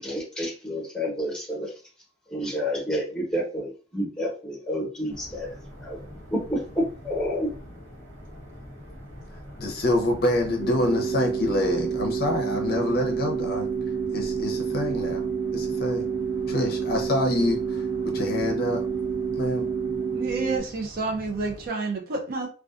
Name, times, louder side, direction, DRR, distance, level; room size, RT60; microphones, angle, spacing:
voice 1, 0.0-1.7 2.3-5.5 5.8-6.0 6.3-7.5, equal, 5° left, -3 dB, 0.9 m, -29 dB
sound 1, 5.1-21.7, equal, 75° right, 1.0 m, -44 dB
voice 2, 9.6-13.7 14.1-15.2 15.5-16.1 16.5-17.8 18.1-18.8 19.3-19.7, left 1 dB, 50° left, 2 dB, 0.6 m, -26 dB
sound 2, 10.6-20.6, right 6 dB, 35° right, 1.0 m, -28 dB
voice 3, 20.1-22.5, right 3 dB, 50° right, 2 dB, 0.5 m, -29 dB
2.4 x 2.3 x 2.3 m, 0.38 s
head